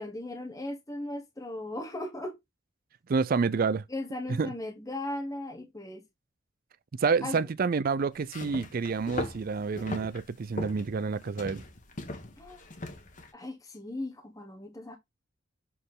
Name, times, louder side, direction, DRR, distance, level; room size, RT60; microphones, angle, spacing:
voice 1, 0.0-2.3 3.9-6.0 7.2-7.4 12.4-12.6 13.3-15.0, left 1 dB, 20° left, 1.1 m, -37 dB
voice 2, 3.1-3.8 4.4-4.5 7.0-11.6, right 5 dB, 50° right, 0.4 m, -28 dB
sound 1, 8.2-13.3, left 2 dB, 45° left, 1.5 m, -39 dB
7.6 x 4.1 x 3.8 m
head